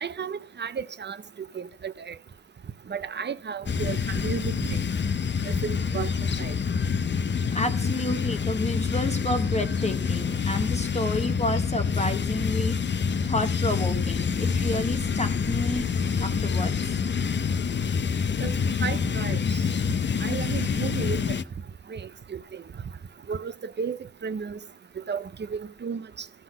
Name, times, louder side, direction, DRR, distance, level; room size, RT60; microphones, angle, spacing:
voice 1, 0.0-1.2 1.5-2.1 2.9-4.8 5.5-6.1 6.4-6.5 18.4-18.5 18.8-19.7 20.2-21.4 21.9-22.6 23.3-24.0 24.2-24.6 25.1-25.2 25.5-26.3, right 6 dB, 35° right, 0.5 m, -33 dB
sound 1, 3.7-21.4, left 6 dB, 35° left, 0.5 m, -27 dB
voice 2, 7.5-12.8 13.2-15.9 16.2-16.9, left 1 dB, 20° left, 0.9 m, -30 dB
14.0 x 6.0 x 5.4 m
wide cardioid pair, 125°, 31 cm